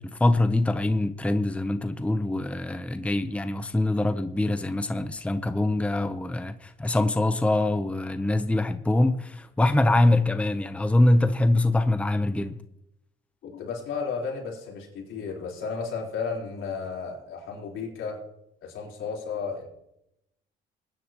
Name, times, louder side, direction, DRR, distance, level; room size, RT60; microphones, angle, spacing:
voice 1, 0.0-12.6, left 2 dB, 5° left, 0.7 m, -24 dB
voice 2, 13.4-18.2 18.6-19.7, left 5 dB, 80° left, 3.9 m, -33 dB
20.5 x 10.0 x 2.9 m
cardioid pair, 90°, 20 cm